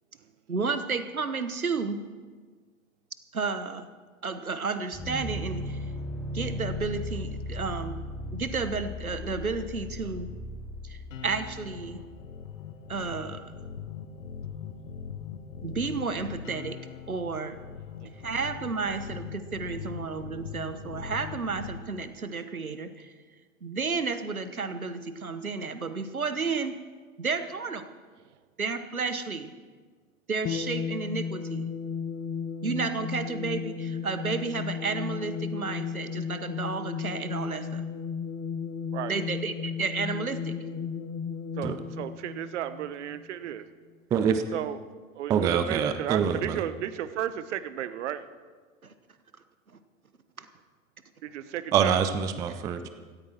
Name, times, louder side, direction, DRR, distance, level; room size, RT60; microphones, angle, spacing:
voice 1, 0.5-2.0 3.3-3.9 4.2-5.8 6.3-8.0 8.3-10.3 10.8-12.0 12.9-13.5 15.6-16.8 17.1-17.6 18.2-23.1 23.6-26.8 27.2-27.8 28.6-29.5 30.3-31.7 32.6-37.8 39.1-40.6 45.4-45.5 48.8-48.9 50.4-50.5 52.8-52.9, right 4 dB, 85° right, 11 dB, 1.1 m, -32 dB
sound 1, 4.9-12.1, left 1 dB, 10° left, 5.1 m, -37 dB
sound 2, 11.1-21.8, left 7 dB, 65° left, 1.3 m, -41 dB
sound 3, 30.4-43.3, left 6 dB, 25° left, 0.9 m, -34 dB
voice 2, 41.6-43.6 44.5-44.8 45.2-48.2 51.2-52.1, right 11 dB, 55° right, 13 dB, 1.0 m, -33 dB
voice 3, 44.1-44.4 45.3-46.6 51.7-52.8, right 7 dB, 10° right, 9 dB, 0.3 m, -25 dB
17.0 x 14.0 x 4.4 m, 1.5 s
figure-of-eight pair, 95°, 42 cm